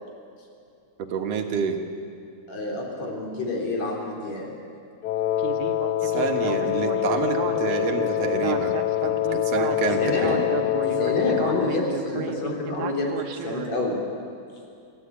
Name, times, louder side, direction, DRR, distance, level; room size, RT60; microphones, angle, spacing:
voice 1, 1.0-1.8 6.0-8.9 9.3-10.4, right 6 dB, 60° right, 4 dB, 2.4 m, -28 dB
voice 2, 2.5-4.5 9.8-10.4 10.8-14.0, left 2 dB, 65° left, -1 dB, 4.7 m, -28 dB
Wind instrument woodwind instrument, 5.0-11.8, left 14 dB, 90° left, 1.2 m, -25 dB
Speech synthesizer, 5.4-13.7, right 8 dB, 80° right, 2.6 m, -33 dB
26.5 x 13.0 x 8.6 m, 2.4 s
omnidirectional pair, 3.4 m